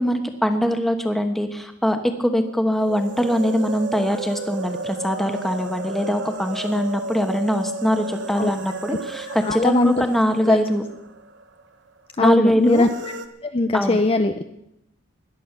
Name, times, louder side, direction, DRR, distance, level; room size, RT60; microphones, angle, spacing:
voice 1, 0.0-10.8 12.2-12.9 13.7-14.0, equal, ahead, 6 dB, 1.2 m, -22 dB
sound 1, 2.8-11.6 11.9-12.0 12.6-13.3, right 3 dB, 55° right, 1.0 m, -33 dB
voice 2, 9.4-10.0 10.5-10.6 12.2-12.9 13.4-14.4, left 2 dB, 25° left, 7 dB, 0.5 m, -20 dB
17.0 x 11.5 x 5.9 m, 0.83 s
head